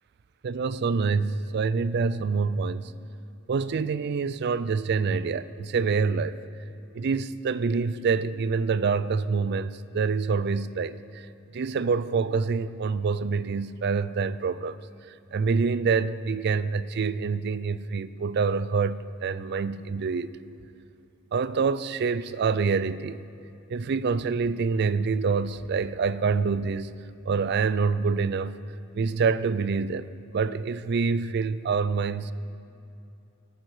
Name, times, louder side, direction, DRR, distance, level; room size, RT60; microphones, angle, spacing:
voice 1, 0.4-2.9 3.5-6.4 6.9-14.8 15.3-20.3 21.3-23.2 23.7-27.0 27.3-28.6 28.9-32.3, right 5 dB, 55° right, 0.4 m, -26 dB
17.5 x 9.1 x 4.8 m
head